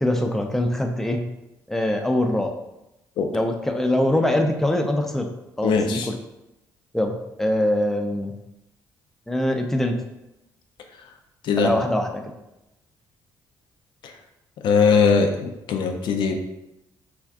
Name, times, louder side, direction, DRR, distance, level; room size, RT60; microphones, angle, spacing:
voice 1, 0.0-1.2 1.7-2.5 3.3-5.3 5.6-6.2 6.9-8.3 9.3-10.0 11.6-12.2, left 1 dB, 5° left, 3 dB, 0.4 m, -23 dB
voice 2, 5.6-6.1 11.5-11.7 14.6-15.3 15.7-16.4, left 5 dB, 70° left, 4 dB, 0.4 m, -19 dB
2.4 x 2.3 x 3.5 m, 0.92 s
supercardioid pair, 65°, 8 cm